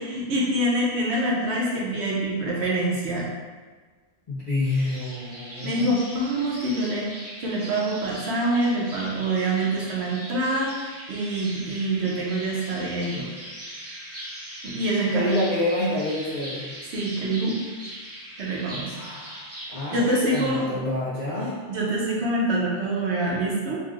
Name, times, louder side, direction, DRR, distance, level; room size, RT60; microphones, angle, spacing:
voice 1, 0.1-3.3 5.6-13.3 14.6-15.4 16.9-17.5 18.4-18.9 19.9-20.8 21.7-23.8, right 1 dB, 85° right, -4 dB, 1.0 m, -25 dB
voice 2, 4.3-6.0 15.1-16.6 18.9-19.4 19.7-21.6, left 1 dB, 50° left, -9 dB, 0.5 m, -28 dB
sound 1, 4.6-20.5, right 1 dB, 20° right, 0.4 m, -40 dB
3.1 x 2.5 x 2.4 m, 1.4 s
omnidirectional pair, 1.1 m